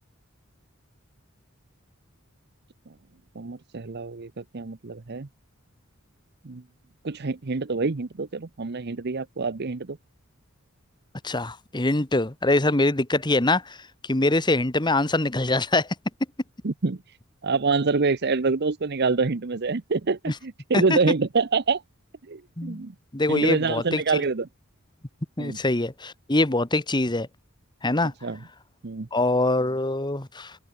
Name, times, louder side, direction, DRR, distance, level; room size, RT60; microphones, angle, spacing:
voice 1, 3.3-5.3 6.4-6.6 7.0-10.0 16.6-17.0 17.4-21.8 22.3-22.9 23.3-24.5 25.4-25.6 28.2-28.4 28.8-29.1, right 4 dB, 50° right, 0.8 m, -26 dB
voice 2, 11.2-13.8 14.0-15.9 20.3-20.4 20.7-21.0 22.6-22.8 23.1-24.0 25.4-27.3 27.8-28.1 29.1-30.6, left 2 dB, 20° left, 1.5 m, -23 dB
head